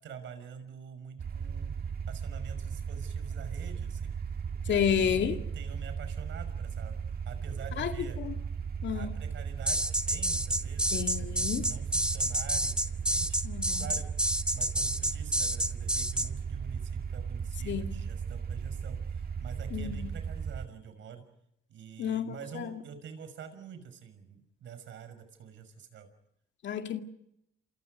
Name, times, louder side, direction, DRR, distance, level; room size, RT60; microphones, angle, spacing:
voice 1, 0.0-1.8 2.1-4.1 4.6-8.2 8.9-13.4 13.8-14.1 14.5-21.2 21.7-26.1, right 7 dB, 70° right, 6.0 m, -46 dB
sound 1, 1.2-20.7, right 6 dB, 50° right, 1.6 m, -36 dB
voice 2, 4.7-5.4 7.8-8.3 8.8-9.1 10.9-11.7 13.4-13.9 17.6-18.0 19.7-20.1 22.0-22.7 26.6-27.0, left 8 dB, 65° left, 2.2 m, -31 dB
sound 2, 9.7-16.3, right 1 dB, 5° right, 1.4 m, -29 dB
29.0 x 27.5 x 5.3 m
cardioid pair, 90°, 20 cm